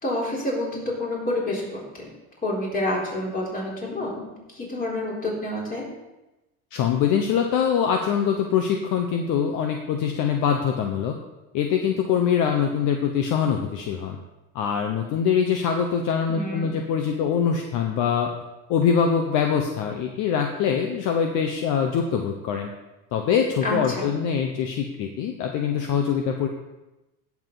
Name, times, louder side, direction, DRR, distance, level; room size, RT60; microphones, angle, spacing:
voice 1, 0.0-2.1 2.4-5.8 16.3-16.7 23.6-24.1, left 1 dB, 25° left, -4 dB, 4.0 m, -28 dB
voice 2, 6.7-11.1 11.5-14.2 14.5-18.3 18.7-22.7 23.1-26.5, left 7 dB, 55° left, 4 dB, 1.1 m, -23 dB
17.0 x 7.3 x 4.0 m, 1.0 s
cardioid pair, 140°, 37 cm